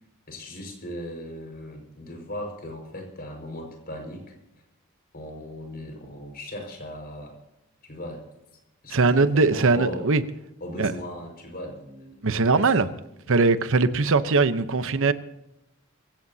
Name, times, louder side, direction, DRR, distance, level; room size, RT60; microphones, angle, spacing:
voice 1, 0.3-4.3 5.1-7.4 7.8-8.2 8.8-10.0 10.6-12.9, left 1 dB, 45° left, 2 dB, 5.2 m, -38 dB
voice 2, 8.9-10.2 10.8-10.9 12.2-12.9 13.3-15.1, right 3 dB, 65° right, 12 dB, 0.9 m, -20 dB
24.0 x 16.5 x 2.8 m, 0.87 s
head